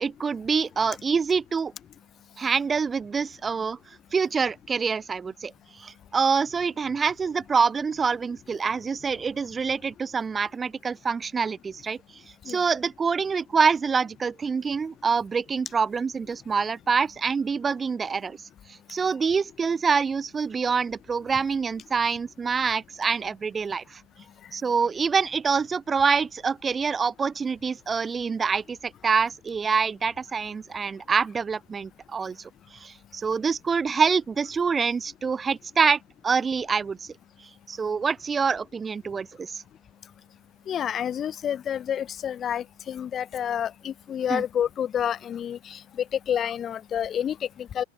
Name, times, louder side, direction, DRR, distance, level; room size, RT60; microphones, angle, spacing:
voice 1, 0.0-1.7 2.4-3.8 4.1-5.5 5.8-12.0 12.5-18.4 18.9-24.0 24.5-28.8 29.0-32.4 32.8-37.0 37.7-39.6 44.3-44.4, right 5 dB, 15° right, 0.8 m, -26 dB
voice 2, 40.7-47.8, left 9 dB, 25° left, 1.7 m, -29 dB
open air
figure-of-eight pair, 90°, 0 cm